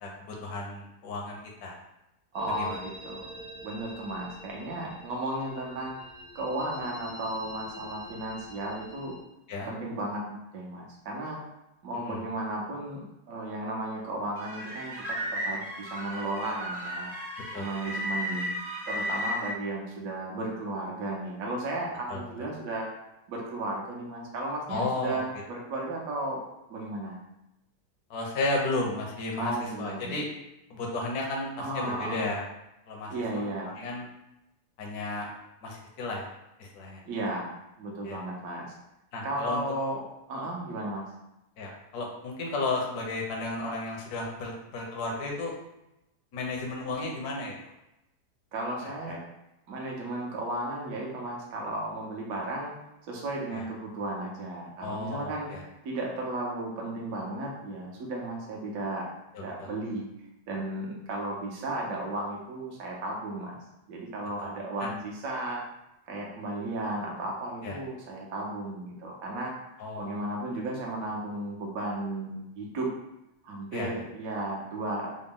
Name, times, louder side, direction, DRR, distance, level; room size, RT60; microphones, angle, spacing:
voice 1, 0.0-1.8 2.6-2.8 9.5-9.7 12.0-12.2 17.5-17.9 22.1-22.5 24.7-25.2 28.1-30.3 30.7-32.4 32.9-33.5 33.8-34.1 34.8-35.3 35.6-36.3 36.6-37.0 38.0-38.2 39.1-39.6 41.6-45.5 46.3-47.7 48.8-49.2 53.5-53.7 54.8-55.6 59.3-59.7 64.4-64.5 64.8-64.9 67.6-67.8 69.8-70.2 73.7-73.9, left 2 dB, 70° left, 0 dB, 1.3 m, -34 dB
sound 1, 2.3-9.2, left 1 dB, 50° left, 0.6 m, -46 dB
voice 2, 2.3-3.3 3.6-5.9 6.3-9.1 9.7-11.4 11.8-15.2 15.4-17.1 17.5-18.5 18.9-22.9 23.3-26.4 26.7-27.2 29.4-30.2 31.6-32.3 33.1-33.7 37.0-38.7 39.2-41.0 48.5-49.2 49.7-52.7 53.1-55.5 55.8-59.1 59.4-60.1 60.5-63.6 63.9-65.6 66.1-69.5 70.0-72.9 73.4-75.1, right 1 dB, 60° right, -2 dB, 1.2 m, -34 dB
sound 2, 14.4-19.5, equal, 45° right, 0.5 m, -34 dB
3.9 x 2.2 x 3.6 m, 0.89 s
omnidirectional pair, 1.8 m